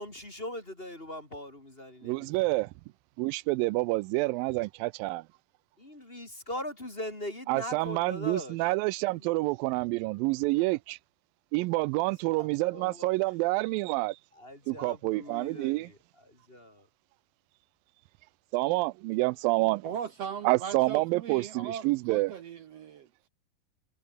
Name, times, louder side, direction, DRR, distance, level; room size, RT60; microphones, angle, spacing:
voice 1, 0.0-2.5 5.8-8.7 9.1-9.2 12.4-13.1 14.3-16.9, left 1 dB, 15° left, 3.2 m, -41 dB
voice 2, 2.0-2.7 3.2-5.2 7.5-11.0 11.5-14.2 14.7-15.9 18.5-19.8 20.4-22.3, right 22 dB, 85° right, 2.3 m, -28 dB
voice 3, 19.8-23.1, right 8 dB, 65° right, 1.7 m, -38 dB
omnidirectional pair, 4.1 m